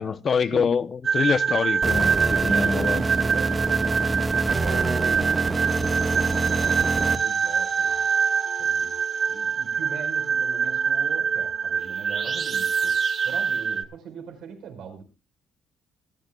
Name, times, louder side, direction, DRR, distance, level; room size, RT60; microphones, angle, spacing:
voice 1, 0.0-3.0, left 6 dB, 50° left, 0.7 m, -25 dB
sound 1, 1.0-13.8, right 6 dB, 45° right, 0.7 m, -25 dB
sound 2, 1.8-7.2, right 2 dB, 25° right, 1.4 m, -26 dB
voice 2, 2.4-8.0 8.6-8.9 9.3-15.0, right 6 dB, 80° right, 4.6 m, -40 dB
sound 3, 4.6-12.2, left 5 dB, 80° left, 7.1 m, -54 dB
24.5 x 10.5 x 2.3 m
cardioid pair, 90°, 0 cm